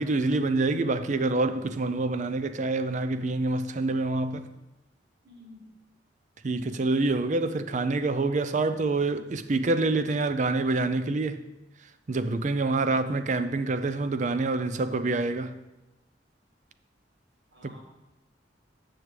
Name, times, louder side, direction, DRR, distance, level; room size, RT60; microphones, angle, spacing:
voice 1, 0.0-4.5 6.4-11.4 12.1-15.6, right 3 dB, 40° right, 0.5 m, -26 dB
voice 2, 5.2-5.7 17.5-17.8, left 1 dB, 70° right, 1.8 m, -50 dB
8.3 x 6.1 x 4.7 m
head